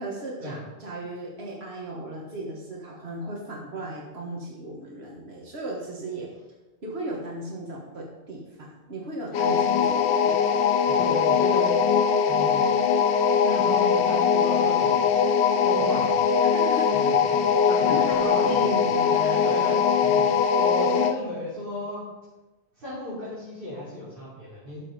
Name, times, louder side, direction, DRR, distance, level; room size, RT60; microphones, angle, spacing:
voice 1, 0.0-6.3 6.8-10.6 15.9-16.1 16.5-17.0 17.9-19.1, right 2 dB, 75° right, -2 dB, 1.8 m, -36 dB
sound 1, 9.3-21.2, left 6 dB, 90° left, 0.9 m, -21 dB
voice 2, 10.8-11.7 12.3-12.6 13.4-15.1 15.6-16.2 16.9-17.4 17.6-18.8 19.1-20.3 20.6-22.0 22.8-24.8, left 1 dB, 55° right, -10 dB, 3.7 m, -34 dB
12.5 x 6.1 x 5.2 m, 1.1 s
omnidirectional pair, 1.1 m